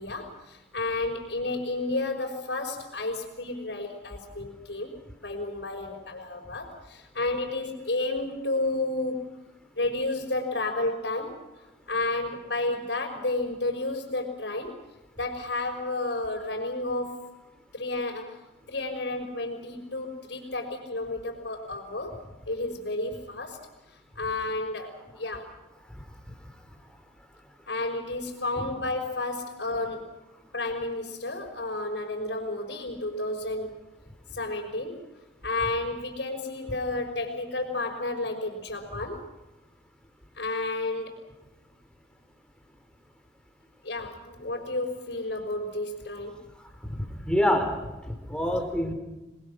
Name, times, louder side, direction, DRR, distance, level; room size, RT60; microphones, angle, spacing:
voice 1, 0.0-9.3 9.7-11.4 11.9-14.8 15.2-17.2 17.7-18.4 18.7-22.2 22.4-23.6 24.1-25.5 27.7-30.1 30.5-33.7 34.3-35.0 35.4-39.3 40.4-41.2 43.8-46.4, left 2 dB, 80° left, -3 dB, 4.8 m, -31 dB
voice 2, 46.9-47.8 48.1-48.9, left 1 dB, 5° left, 4 dB, 3.9 m, -26 dB
28.0 x 21.5 x 6.3 m, 1.1 s
head